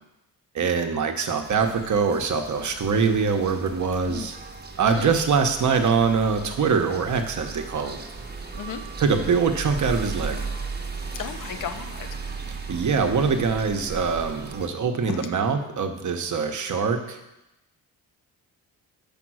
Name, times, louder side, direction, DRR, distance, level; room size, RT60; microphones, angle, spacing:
voice 1, 0.5-4.4 4.8-8.0 9.0-10.5 12.5-17.2, right 5 dB, 45° right, 5 dB, 1.0 m, -23 dB
sound 1, 1.4-14.7, right 4 dB, 25° right, 1.1 m, -36 dB
voice 2, 11.2-12.1, left 8 dB, 50° left, 8 dB, 0.9 m, -34 dB
6.0 x 5.3 x 6.2 m, 0.92 s
supercardioid pair, 70°, 40 cm